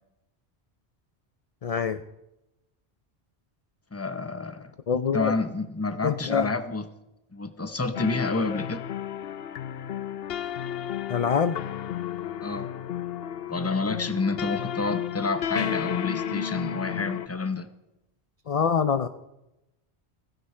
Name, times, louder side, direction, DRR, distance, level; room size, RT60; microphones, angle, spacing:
voice 1, 1.6-2.0 4.9-5.3 6.0-6.5 11.1-11.6 18.5-19.1, left 6 dB, 45° left, 0.6 m, -25 dB
voice 2, 3.9-4.7 5.1-6.8 7.3-8.8 12.4-12.7 13.5-17.7, left 3 dB, 15° left, 0.8 m, -29 dB
sound 1, 7.9-17.3, left 10 dB, 65° left, 0.9 m, -32 dB
16.5 x 16.0 x 4.4 m
omnidirectional pair, 1.1 m